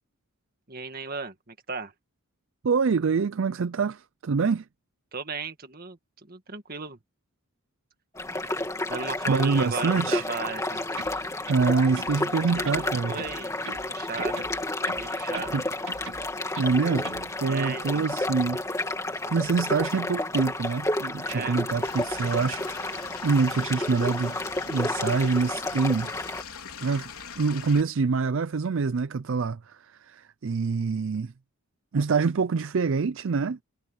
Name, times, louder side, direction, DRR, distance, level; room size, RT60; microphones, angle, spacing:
voice 1, 0.7-1.9 5.1-6.0 6.3-7.0 8.9-11.1 12.6-13.5 13.9-14.5 14.9-15.6 17.5-18.1 21.3-21.6, right 4 dB, 40° right, 1.9 m, -35 dB
voice 2, 2.6-4.7 8.4-8.5 9.3-10.3 11.5-13.2 15.5-15.6 16.6-18.6 19.3-24.4 24.7-26.1 26.8-27.1 27.4-31.3 31.9-33.6, right 4 dB, 60° right, 0.4 m, -26 dB
sound 1, 8.1-26.4, left 2 dB, 15° left, 2.5 m, -31 dB
sound 2, 10.9-12.2 12.5-13.9 14.2-15.6 15.9-17.3, right 4 dB, 75° right, 5.9 m, -42 dB
Stream / Liquid, 21.8-27.8, left 7 dB, 80° left, 3.7 m, -42 dB
head